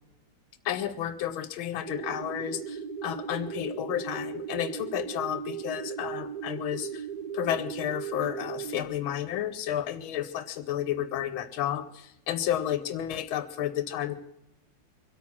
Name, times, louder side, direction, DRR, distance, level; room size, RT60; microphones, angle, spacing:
voice 1, 0.6-7.1 7.3-14.2, left 11 dB, 85° left, 11 dB, 1.6 m, -32 dB
sound 1, 1.8-8.8, right 7 dB, 55° right, 1.5 m, -37 dB
23.5 x 8.6 x 5.9 m, 0.87 s
omnidirectional pair, 2.2 m